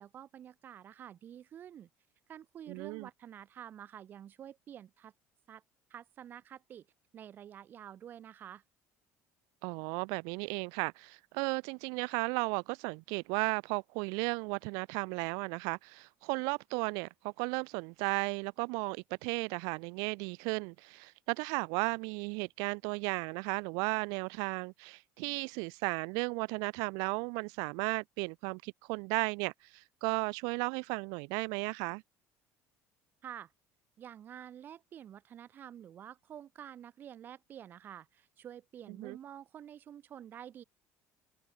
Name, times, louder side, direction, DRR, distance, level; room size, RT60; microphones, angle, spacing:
voice 1, 0.0-1.9 2.3-5.1 5.5-5.6 5.9-6.9 7.1-8.6 33.2-33.5 34.0-40.6, right 10 dB, 30° right, 2.3 m, -49 dB
voice 2, 2.7-3.1 9.6-32.0 39.0-39.2, right 34 dB, 85° right, 0.3 m, -35 dB
cardioid pair, 175°, 6 cm